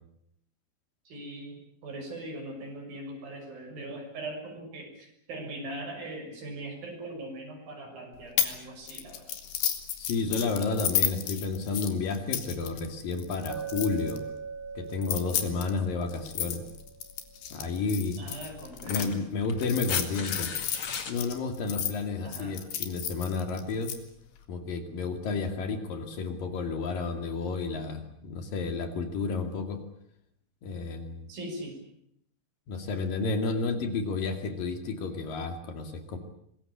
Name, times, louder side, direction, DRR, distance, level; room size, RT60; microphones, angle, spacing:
voice 1, 1.1-1.6 1.8-9.3 18.2-19.2 22.2-22.6 31.3-31.8, right 1 dB, 60° right, 3 dB, 8.1 m, -40 dB
sound 1, 8.4-8.6 8.9-14.2 14.9-19.1 19.6-21.9 22.3-24.0, left 10 dB, 75° left, 4.1 m, -32 dB
voice 2, 10.0-14.2 14.8-16.6 17.5-18.3 18.8-23.9 24.5-29.8 30.6-31.3 32.7-36.2, left 4 dB, 60° left, 7 dB, 3.9 m, -31 dB
Chink clink, 13.5-17.5, right 6 dB, 25° right, 2.8 m, -41 dB
sound 2, 18.7-21.2 22.7-22.8, left 6 dB, 40° left, 2.4 m, -38 dB
25.0 x 21.0 x 8.6 m, 0.71 s
omnidirectional pair, 4.6 m